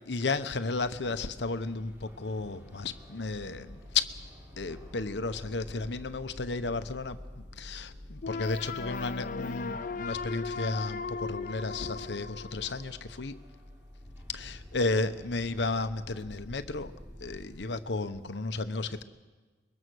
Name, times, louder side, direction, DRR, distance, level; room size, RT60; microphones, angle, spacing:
voice 1, 0.0-4.1 4.6-13.4 14.3-16.9 17.2-19.0, left 3 dB, 75° left, 10 dB, 1.0 m, -33 dB
sound 1, 0.8-17.7, left 1 dB, 15° right, 3.5 m, -49 dB
sound 2, 8.2-13.2, left 4 dB, 50° left, 0.7 m, -37 dB
23.0 x 22.0 x 6.3 m, 1.4 s
head